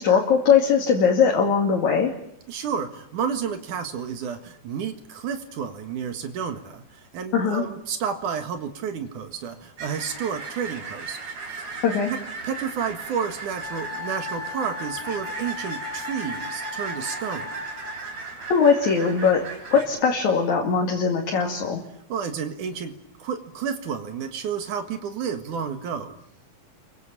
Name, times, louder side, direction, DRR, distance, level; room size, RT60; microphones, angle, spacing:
voice 1, 0.0-2.1 7.3-7.6 11.8-12.1 18.5-19.4 19.7-21.8, left 6 dB, 65° left, 0 dB, 3.7 m, -20 dB
voice 2, 2.5-11.2 12.1-12.2 12.4-17.6 22.1-22.9 23.2-26.2, right 7 dB, 75° right, 7 dB, 3.1 m, -31 dB
sound 1, 9.8-19.9, right 4 dB, 55° right, 4.9 m, -37 dB
Wind instrument woodwind instrument, 13.6-18.1, left 3 dB, 20° right, 2.2 m, -36 dB
30.0 x 23.5 x 7.4 m, 0.72 s
omnidirectional pair, 3.7 m